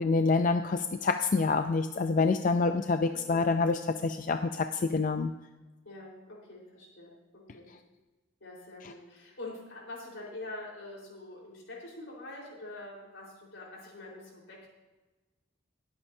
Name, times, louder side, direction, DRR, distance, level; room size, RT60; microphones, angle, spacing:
voice 1, 0.0-5.3, left 4 dB, 40° left, 8 dB, 0.4 m, -27 dB
voice 2, 3.1-3.4 5.8-7.7 8.4-14.7, left 2 dB, 75° left, -3 dB, 4.2 m, -45 dB
20.5 x 8.8 x 2.7 m, 1.2 s
head